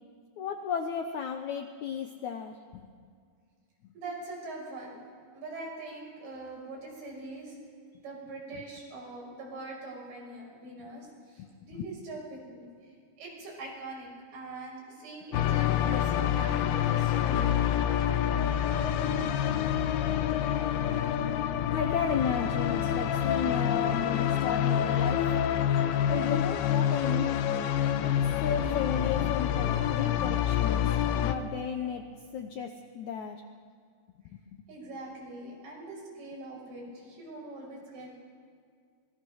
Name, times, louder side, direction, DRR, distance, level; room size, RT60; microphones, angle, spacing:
voice 1, 0.4-2.9 11.4-11.5 11.8-11.9 21.6-25.3 26.1-27.3 28.0-28.1 28.4-30.8 31.1-32.0 32.3-33.4 34.3-34.6, left 7 dB, 75° left, 5 dB, 1.8 m, -34 dB
voice 2, 3.9-5.0 5.3-7.6 8.0-17.5 34.7-38.2, right 2 dB, 75° right, -3 dB, 8.0 m, -43 dB
sound 1, 15.3-31.3, left 10 dB, 90° left, 2.9 m, -27 dB
26.0 x 21.0 x 6.4 m, 2.1 s
omnidirectional pair, 4.5 m